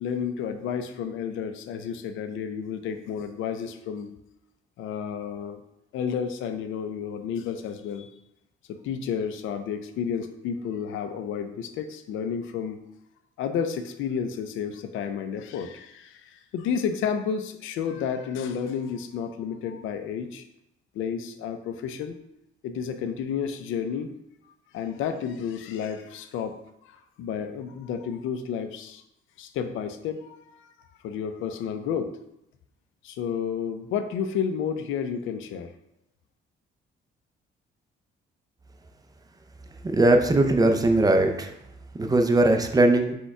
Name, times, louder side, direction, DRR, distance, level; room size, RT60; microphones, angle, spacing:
voice 1, 0.0-4.1 4.8-5.6 5.9-8.1 8.7-12.8 13.4-20.4 20.9-22.2 22.6-24.2 24.7-29.0 29.4-30.7 31.0-32.1 33.0-35.7, left 7 dB, 85° left, 8 dB, 0.5 m, -31 dB
voice 2, 39.9-41.5 42.0-43.1, right 2 dB, 20° right, 5 dB, 0.5 m, -20 dB
4.2 x 2.3 x 4.6 m, 0.83 s
cardioid pair, 90°, 20 cm